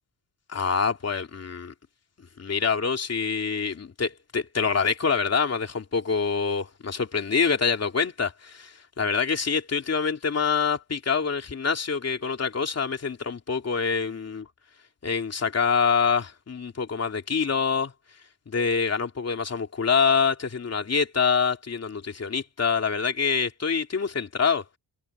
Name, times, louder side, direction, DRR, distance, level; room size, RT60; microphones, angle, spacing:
voice 1, 0.5-1.7 2.4-14.5 15.0-17.9 18.5-24.6, left 5 dB, 35° left, 2.9 m, -26 dB
open air
wide cardioid pair, 175°, 46 cm